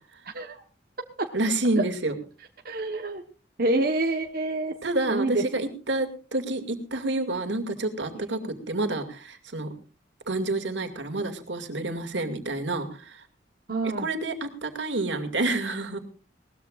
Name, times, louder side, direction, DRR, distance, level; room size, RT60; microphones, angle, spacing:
voice 1, 1.3-2.1 4.8-9.7 10.3-13.2 13.8-16.0, right 2 dB, 85° right, 6 dB, 2.4 m, -28 dB
voice 2, 2.6-3.2 3.6-4.7 5.1-5.4 8.4-8.5 13.7-14.1, right 2 dB, 55° right, 3 dB, 1.2 m, -27 dB
20.5 x 18.5 x 2.5 m, 0.35 s
head